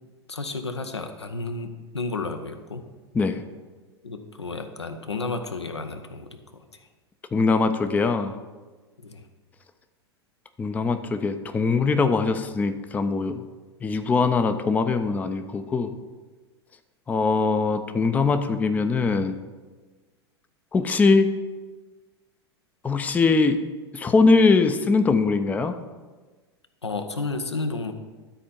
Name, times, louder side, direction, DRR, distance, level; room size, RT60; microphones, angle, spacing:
voice 1, 0.3-2.8 4.0-6.6 9.0-9.2 26.8-27.9, left 3 dB, 80° left, 7 dB, 0.8 m, -32 dB
voice 2, 7.3-8.4 10.6-13.5 13.8-15.9 17.1-19.4 20.7-21.3 22.8-23.6 23.9-25.8, left 4 dB, 10° left, 9 dB, 0.5 m, -22 dB
12.5 x 4.3 x 5.2 m, 1.3 s
figure-of-eight pair, 90°, 14 cm